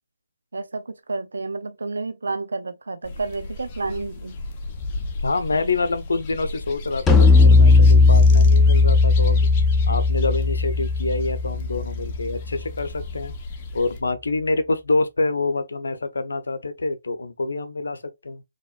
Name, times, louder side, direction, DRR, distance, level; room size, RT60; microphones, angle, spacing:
voice 1, 0.5-4.4, right 3 dB, 85° right, 0.7 m, -30 dB
sound 1, 3.0-14.0, left 2 dB, 35° left, 0.9 m, -35 dB
voice 2, 5.2-9.5 9.9-13.3 13.7-18.4, left 3 dB, 80° left, 0.7 m, -26 dB
sound 2, 7.1-12.5, left 3 dB, 10° left, 0.5 m, -16 dB
4.3 x 3.0 x 2.4 m
hypercardioid pair, 150°, 0 cm